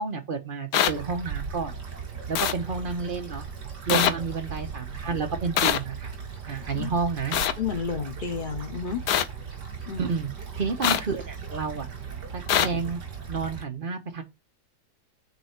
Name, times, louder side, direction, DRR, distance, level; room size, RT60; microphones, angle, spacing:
voice 1, 0.0-1.7 2.3-3.4 3.9-6.1 6.5-7.3 10.0-10.3 10.6-11.9 12.3-13.0 13.3-14.2, right 4 dB, 35° right, 1.1 m, -30 dB
sound 1, 0.7-0.9 2.4-2.5 3.9-4.1 5.6-5.8 7.3-7.5 9.1-9.2 10.8-11.0 12.5-12.7, left 10 dB, 70° left, 1.1 m, -22 dB
sound 2, 0.9-13.6, right 6 dB, 90° right, 2.9 m, -38 dB
voice 2, 7.6-9.0 9.9-10.2, left 6 dB, 45° left, 0.7 m, -31 dB
5.7 x 4.1 x 5.8 m
omnidirectional pair, 1.8 m